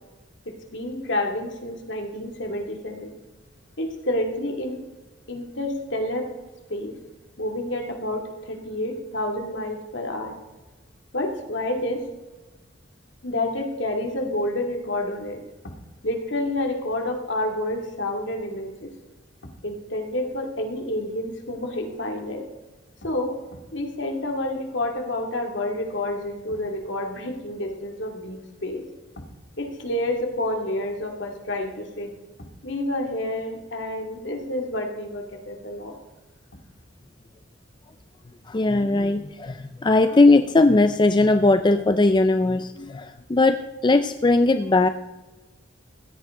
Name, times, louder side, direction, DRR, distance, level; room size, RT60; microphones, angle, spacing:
voice 1, 0.5-3.1 3.8-4.8 5.3-6.3 6.7-6.9 7.4-10.4 11.1-12.0 13.2-15.4 15.6-15.7 16.0-18.9 19.6-22.4 23.0-28.8 29.2-29.3 29.6-32.1 32.6-35.9, left 1 dB, 65° left, 2 dB, 2.4 m, -29 dB
voice 2, 38.5-44.9, left 2 dB, 25° left, 9 dB, 0.4 m, -19 dB
16.0 x 13.5 x 3.7 m, 1.2 s
head